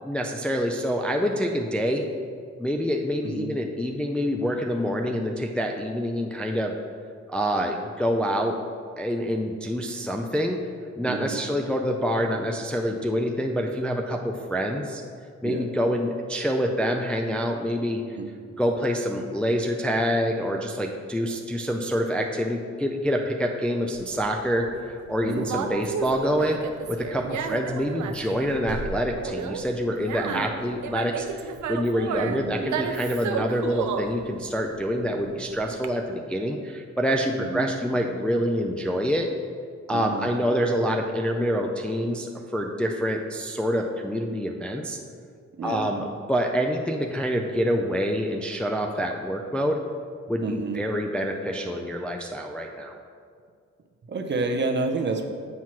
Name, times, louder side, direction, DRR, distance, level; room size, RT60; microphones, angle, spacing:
voice 1, 0.1-2.0 2.6-6.7 7.3-8.6 9.0-10.6 11.0-15.0 15.4-18.0 18.6-26.6 26.9-39.3 39.9-45.0 45.6-49.8 50.3-53.0, equal, 5° left, 2 dB, 0.4 m, -26 dB
voice 2, 3.2-3.5 11.1-11.5 15.4-15.7 18.2-18.3 25.2-25.6 27.2-27.6 30.2-30.5 32.2-32.7 37.4-37.7 39.9-40.3 45.5-46.0 50.4-50.8 54.1-55.2, right 3 dB, 40° right, 4 dB, 0.6 m, -30 dB
Conversation, 23.9-35.8, right 7 dB, 80° right, 0.5 m, -33 dB
7.5 x 3.0 x 5.7 m, 2.1 s
cardioid pair, 115°, 29 cm